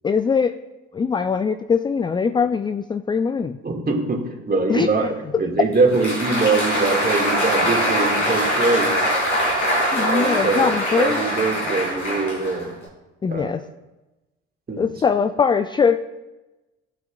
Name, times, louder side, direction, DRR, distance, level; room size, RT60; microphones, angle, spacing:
voice 1, 0.0-0.5 0.9-3.6 4.7-5.1 9.9-11.2 13.2-13.6 14.8-16.0, left 6 dB, 15° left, 11 dB, 0.4 m, -21 dB
voice 2, 3.6-8.9 9.9-12.7 13.3-13.6 14.7-14.9, right 3 dB, 25° right, 1 dB, 2.4 m, -23 dB
Applause, 5.7-12.8, equal, 90° left, 3.4 m, -22 dB
15.5 x 8.8 x 2.6 m, 1.1 s
figure-of-eight pair, 50°, 35 cm